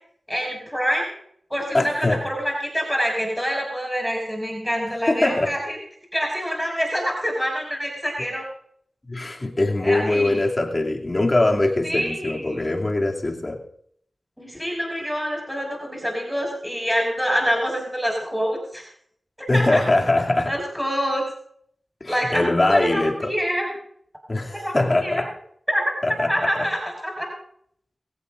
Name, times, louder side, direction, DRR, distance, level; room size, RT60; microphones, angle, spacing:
voice 1, 0.3-1.1 1.5-5.8 6.1-8.5 9.8-10.4 11.8-12.6 14.4-18.8 19.5-19.8 20.4-21.2 22.1-22.4 22.7-23.7 24.5-25.2 25.7-25.9 26.3-27.3, equal, ahead, 0 dB, 6.4 m, -26 dB
voice 2, 1.7-2.2 5.1-5.5 9.1-13.6 19.5-20.5 22.0-23.3 24.3-25.3 26.0-26.3, left 2 dB, 35° left, 0 dB, 2.7 m, -22 dB
23.0 x 16.5 x 2.6 m, 0.66 s
wide cardioid pair, 75°, 0 cm